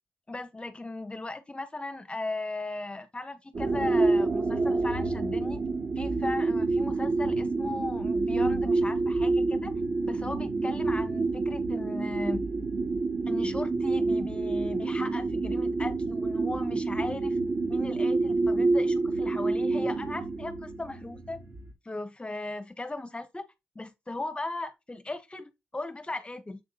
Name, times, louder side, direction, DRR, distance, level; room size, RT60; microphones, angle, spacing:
voice 1, 0.3-5.6 6.0-9.7 10.1-12.5 13.3-17.4 17.7-21.4 21.8-23.4 23.7-26.6, left 2 dB, 25° left, 1.6 m, -37 dB
sound 1, 3.5-21.7, right 3 dB, 55° right, 2.9 m, -28 dB
7.9 x 3.7 x 4.1 m
supercardioid pair, 45°, 4 cm